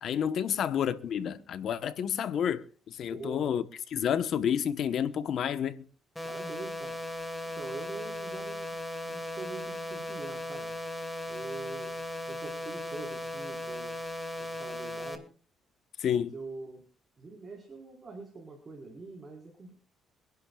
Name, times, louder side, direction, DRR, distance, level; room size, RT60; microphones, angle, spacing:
voice 1, 0.0-3.6 3.9-5.9 16.0-16.3, left 8 dB, 65° left, 1.1 m, -30 dB
voice 2, 3.0-3.5 6.2-7.0 7.4-8.7 9.1-10.7 11.3-11.9 12.3-14.0 14.4-15.2 16.0-16.8 17.2-19.7, right 3 dB, 35° right, 4.6 m, -44 dB
sound 1, 6.2-15.2, left 1 dB, 5° left, 2.5 m, -37 dB
26.0 x 11.0 x 2.4 m
cardioid pair, 90°, 0 cm